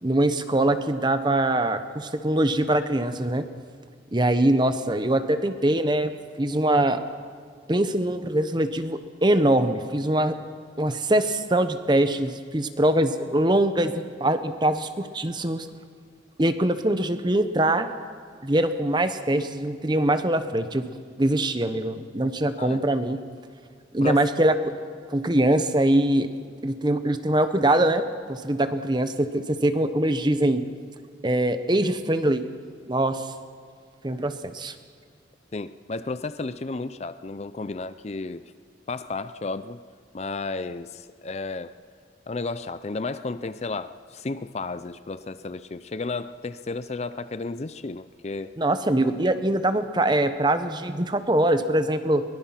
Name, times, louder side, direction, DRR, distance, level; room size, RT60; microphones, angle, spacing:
voice 1, 0.0-3.5 4.1-7.0 7.7-10.4 10.8-15.7 16.4-17.9 18.4-20.9 21.2-23.2 23.9-24.5 25.1-26.3 26.6-30.6 31.2-32.4 32.9-33.3 34.0-34.7 48.6-52.2, right 1 dB, 25° right, 10 dB, 1.0 m, -23 dB
voice 2, 24.0-24.3 35.5-38.4 38.9-39.8 40.1-41.7 42.3-48.5, left 3 dB, 35° left, 13 dB, 0.5 m, -33 dB
23.0 x 22.0 x 5.9 m, 2.1 s
head